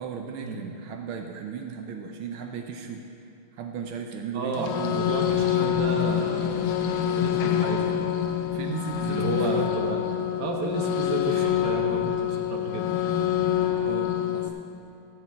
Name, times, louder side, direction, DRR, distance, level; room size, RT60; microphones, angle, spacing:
voice 1, 0.0-3.1 3.5-5.4 8.5-9.6 11.3-11.6 13.8-14.5, right 7 dB, 85° right, 3 dB, 1.6 m, -36 dB
voice 2, 4.3-6.7 7.1-8.1 9.0-10.0 10.4-12.9, right 3 dB, 55° right, 1 dB, 1.7 m, -32 dB
sound 1, 4.5-14.5, left 10 dB, 75° left, 1.5 m, -26 dB
14.5 x 5.2 x 8.3 m, 2.6 s
omnidirectional pair, 2.3 m